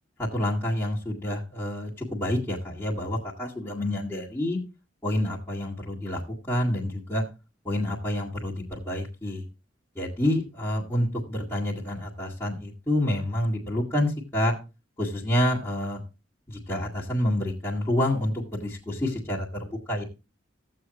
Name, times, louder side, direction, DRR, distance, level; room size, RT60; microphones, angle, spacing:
voice 1, 0.2-4.6 5.0-6.2 6.5-7.2 7.6-9.4 10.0-14.6 15.0-16.0 16.5-20.0, left 1 dB, 15° left, -7 dB, 1.9 m, -28 dB
14.5 x 7.7 x 2.9 m, 0.28 s
head